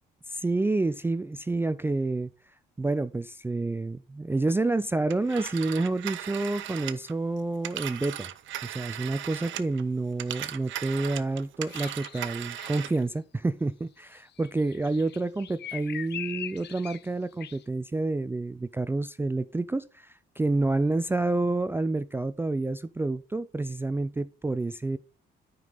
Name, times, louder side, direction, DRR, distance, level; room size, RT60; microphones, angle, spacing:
voice 1, 0.3-2.3 2.8-8.3 8.6-25.0, right 2 dB, 10° right, 0.3 m, -29 dB
Telephone, 5.1-9.8 10.1-13.0, right 12 dB, 75° right, 0.7 m, -38 dB
sound 1, 11.6-13.0 14.4-17.1 17.4-17.6, left 10 dB, 60° left, 0.7 m, -41 dB
9.5 x 5.2 x 3.9 m
cardioid pair, 90°, 20 cm